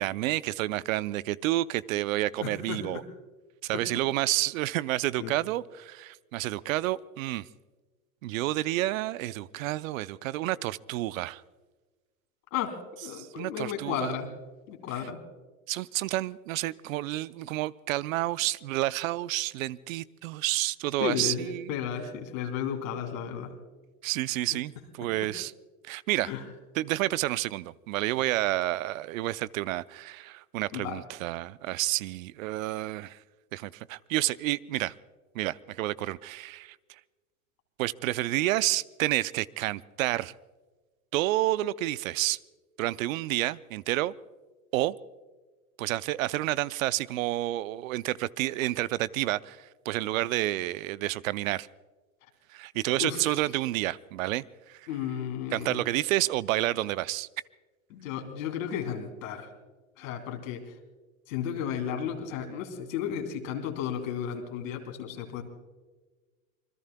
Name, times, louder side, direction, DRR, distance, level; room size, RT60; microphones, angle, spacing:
voice 1, 0.0-3.0 3.6-7.5 8.2-11.4 13.1-14.1 15.7-21.7 24.0-25.5 25.9-26.3 26.8-33.2 33.5-34.9 35.3-36.8 37.8-40.3 41.1-42.4 42.8-44.1 44.7-45.0 45.8-51.7 52.5-54.8 55.5-57.3, right 16 dB, 75° right, 18 dB, 0.6 m, -30 dB
voice 2, 2.4-3.0 3.7-3.8 5.2-5.3 12.5-12.8 13.0-14.3 14.7-15.2 21.0-23.6 24.5-24.6 25.0-25.3 26.2-26.5 30.7-31.0 53.0-53.4 54.9-55.8 57.9-59.5 60.0-60.7 61.3-65.4, left 8 dB, 70° left, 4 dB, 3.2 m, -34 dB
27.0 x 21.0 x 2.2 m, 1.3 s
hypercardioid pair, 95°, 41 cm